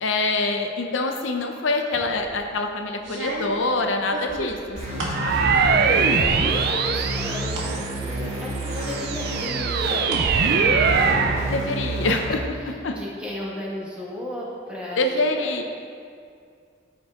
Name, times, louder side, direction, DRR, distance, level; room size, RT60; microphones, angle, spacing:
voice 1, 0.0-5.6 5.8-6.7 11.5-12.4 12.7-12.9 15.0-15.6, left 2 dB, 80° left, 4 dB, 0.7 m, -26 dB
sound 1, 1.9-2.4 3.0-5.3 5.7-6.3 6.6-7.7 8.2-8.3 9.1-10.3 10.6-11.3, right 1 dB, 85° right, 1.9 m, -35 dB
sound 2, 4.8-12.3, right 2 dB, 35° right, 2.1 m, -30 dB
sound 3, 5.1-8.0 8.6-11.5, right 5 dB, 55° right, 0.5 m, -22 dB
voice 2, 5.9-11.8 12.0-12.2 12.6-15.5, left 1 dB, 5° right, -6 dB, 1.8 m, -34 dB
13.5 x 4.7 x 3.7 m, 2.3 s
head